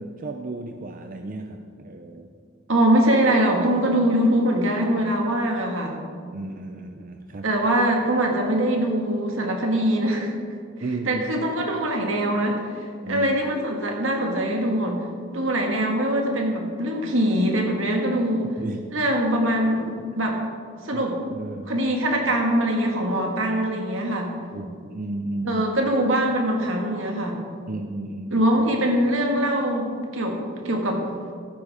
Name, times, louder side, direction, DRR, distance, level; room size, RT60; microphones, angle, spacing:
voice 1, 0.0-2.3 6.3-7.5 10.8-11.2 13.0-13.3 18.6-18.9 20.9-21.1 21.3-21.7 24.5-25.7 27.7-28.5, right 2 dB, 45° right, 5 dB, 0.5 m, -33 dB
voice 2, 2.7-6.0 7.4-10.3 11.1-15.1 15.3-18.5 18.9-20.4 20.8-21.2 21.7-24.3 25.5-27.4 28.3-31.0, right 1 dB, 80° right, 1 dB, 1.9 m, -23 dB
14.0 x 9.6 x 3.6 m, 2.1 s
head